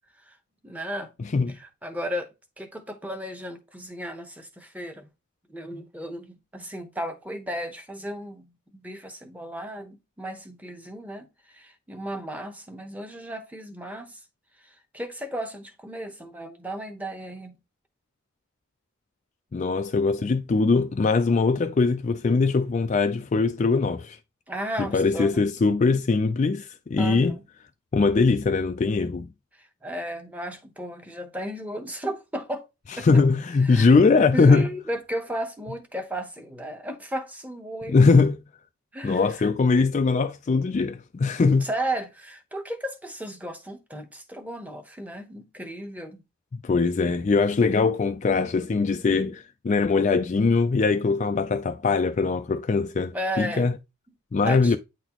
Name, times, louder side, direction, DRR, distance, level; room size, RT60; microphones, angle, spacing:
voice 1, 0.6-1.1 1.5-2.3 2.6-5.1 5.5-14.2 14.6-17.6 24.5-25.5 27.0-27.4 29.6-32.7 33.0-33.1 33.6-33.9 34.2-38.0 38.9-39.5 41.6-46.2 53.1-53.7 54.4-54.8, right 1 dB, 5° right, 0.8 m, -34 dB
voice 2, 19.5-24.2 24.9-27.3 27.9-29.3 33.0-34.7 37.9-38.3 39.0-41.7 46.5-53.7 54.3-54.8, left 4 dB, 35° left, 0.3 m, -21 dB
8.9 x 4.0 x 2.9 m
head